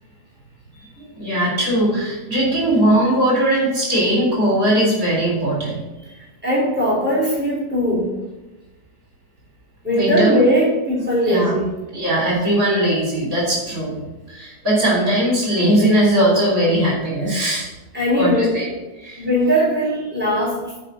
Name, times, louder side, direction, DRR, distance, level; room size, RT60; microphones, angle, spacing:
voice 1, 0.7-5.8 9.9-10.4 11.2-11.5 11.9-14.0 14.3-17.7 18.2-18.7 18.9-19.2, right 1 dB, 55° right, -4 dB, 4.2 m, -19 dB
voice 2, 6.1-8.1 9.8-11.7 17.9-18.7 19.2-20.6, equal, 5° right, -6 dB, 4.1 m, -19 dB
8.9 x 5.4 x 7.8 m, 1.1 s
omnidirectional pair, 1.8 m